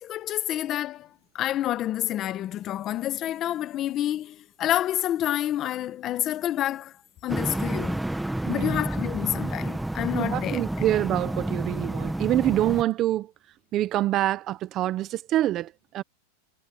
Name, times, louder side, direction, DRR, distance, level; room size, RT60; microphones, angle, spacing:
voice 1, 0.0-6.9 7.2-8.0 8.5-10.8, left 12 dB, 30° left, 1.3 m, -28 dB
sound 1, 7.3-12.8, right 1 dB, 5° right, 1.3 m, -30 dB
voice 2, 8.4-8.8 10.1-13.3 13.7-16.0, right 13 dB, 35° right, 1.0 m, -26 dB
supercardioid pair, 140°, 0 cm